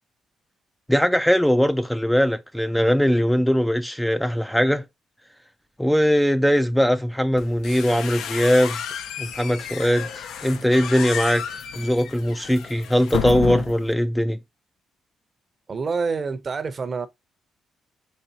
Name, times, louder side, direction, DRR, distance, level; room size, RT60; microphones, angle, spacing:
voice 1, 0.9-4.8 5.8-8.8 9.2-11.4 11.8-14.4, equal, 5° left, 0.3 m, -20 dB
Squeaky Bathroom Door, 7.4-13.9, left 8 dB, 80° left, 0.6 m, -32 dB
voice 2, 15.7-17.1, right 4 dB, 40° right, 0.7 m, -27 dB
4.2 x 3.2 x 2.8 m
cardioid pair, 90°, 0 cm